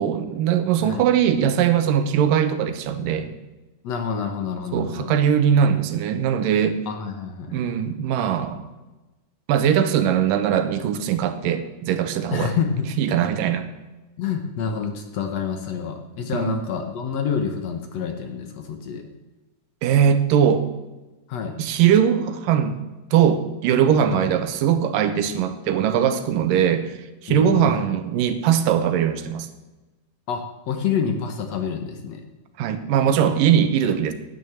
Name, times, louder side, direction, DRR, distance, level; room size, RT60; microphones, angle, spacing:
voice 1, 0.0-3.3 4.7-6.8 7.5-8.7 9.5-12.6 13.0-13.7 16.3-16.6 19.8-20.7 21.6-22.8 23.1-26.9 27.2-29.5 32.6-34.1, right 9 dB, 85° right, 10 dB, 2.7 m, -20 dB
voice 2, 3.8-5.1 6.9-7.7 12.3-12.9 14.2-19.1 21.3-21.6 24.1-24.3 27.3-27.8 30.3-32.2, left 7 dB, 65° left, 5 dB, 2.0 m, -27 dB
10.5 x 9.5 x 7.2 m, 1.1 s
omnidirectional pair, 3.8 m